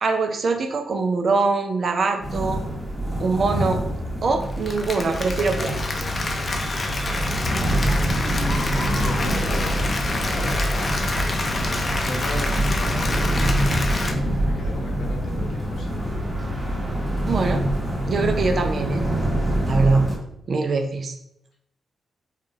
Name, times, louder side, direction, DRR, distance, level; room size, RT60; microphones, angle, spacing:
voice 1, 0.0-2.6 3.2-3.8 4.2-5.8 17.3-17.6 18.1-19.0 19.7-20.1 20.5-21.1, right 3 dB, 55° right, 5 dB, 0.5 m, -23 dB
sound 1, 2.2-20.2, right 1 dB, 15° right, 1.2 m, -25 dB
Applause, 4.4-14.1, left 2 dB, 40° left, 0.5 m, -28 dB
sound 2, 5.4-18.5, left 3 dB, 20° left, 0.9 m, -36 dB
voice 2, 8.1-9.9 10.2-16.0, left 1 dB, 70° left, -1 dB, 0.8 m, -36 dB
3.4 x 2.3 x 2.7 m, 0.77 s
supercardioid pair, 50°, 0 cm